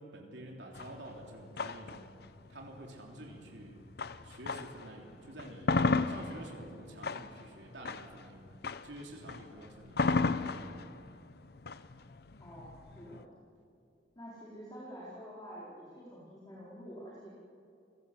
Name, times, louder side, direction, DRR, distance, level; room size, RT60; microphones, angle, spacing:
voice 1, 0.0-2.1 2.5-3.8 4.2-5.8 6.1-8.5 8.8-10.8, right 1 dB, 80° right, 0 dB, 3.2 m, -49 dB
sound 1, 0.7-4.9 5.3-13.2, left 3 dB, 60° left, 0.8 m, -34 dB
voice 2, 12.4-13.3 14.2-17.3, equal, 20° left, -7 dB, 4.2 m, -48 dB
28.5 x 17.0 x 7.8 m, 2.7 s
head